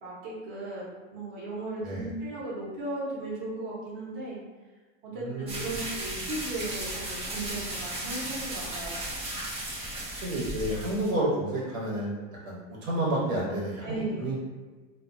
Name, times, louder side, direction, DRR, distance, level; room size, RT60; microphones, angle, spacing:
voice 1, 0.0-4.4 5.0-9.0 13.8-14.3, right 2 dB, 50° right, -7 dB, 1.1 m, -36 dB
voice 2, 5.1-5.7 9.9-14.4, right 1 dB, 80° right, -5 dB, 1.1 m, -31 dB
sound 1, 5.5-11.1, right 1 dB, 15° right, 0.5 m, -35 dB
2.5 x 2.3 x 2.6 m, 1.3 s
supercardioid pair, 130°, 39 cm